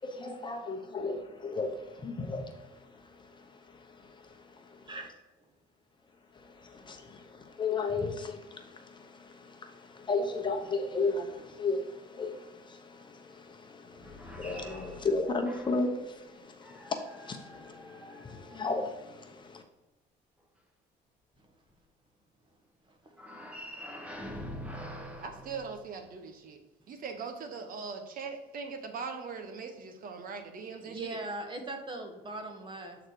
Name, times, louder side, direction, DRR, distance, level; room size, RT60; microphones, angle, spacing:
voice 1, 0.0-4.9 6.3-19.6, left 3 dB, 25° left, 3 dB, 0.9 m, -35 dB
sound 1, 13.9-16.0 16.6-19.0 23.1-26.3, equal, 5° right, 1.0 m, -45 dB
voice 2, 25.2-26.6 26.9-31.2, right 5 dB, 55° right, 6 dB, 1.0 m, -40 dB
voice 3, 30.8-33.0, right 2 dB, 30° right, 3 dB, 1.4 m, -39 dB
8.0 x 4.0 x 4.6 m, 1.1 s
cardioid pair, 110°, 17 cm